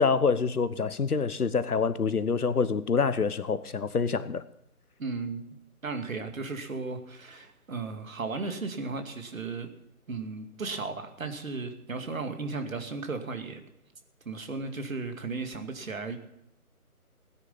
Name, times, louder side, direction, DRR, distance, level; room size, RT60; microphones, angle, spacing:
voice 1, 0.0-4.4, left 5 dB, 75° left, 14 dB, 1.2 m, -26 dB
voice 2, 5.0-5.6 5.8-9.7 10.1-13.6 14.3-16.2, right 4 dB, 60° right, 6 dB, 2.3 m, -35 dB
17.0 x 9.9 x 5.5 m, 0.80 s
figure-of-eight pair, 155°, 45 cm